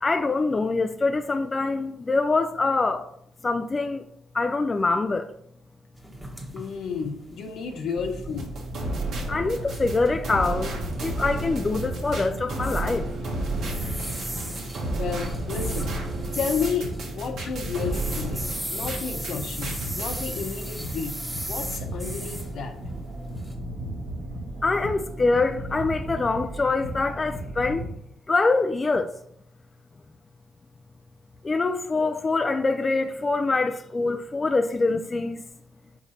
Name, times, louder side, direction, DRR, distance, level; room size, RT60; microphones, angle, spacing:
voice 1, 0.0-3.1 3.4-4.0 4.3-5.3 9.3-13.1 24.6-27.9 28.3-29.1 31.4-35.4, left 3 dB, 30° left, 0.4 m, -24 dB
sound 1, 6.0-23.5, right 1 dB, 10° right, 1.4 m, -39 dB
voice 2, 6.5-8.8 15.0-16.0 16.3-21.2 21.5-22.8, left 6 dB, 70° left, 1.0 m, -32 dB
sound 2, 7.9-27.9, right 1 dB, 85° right, 1.8 m, -35 dB
sound 3, 8.4-19.3 19.6-20.2, right 2 dB, 70° right, 1.5 m, -33 dB
5.4 x 4.9 x 4.3 m
cardioid pair, 90°, 0 cm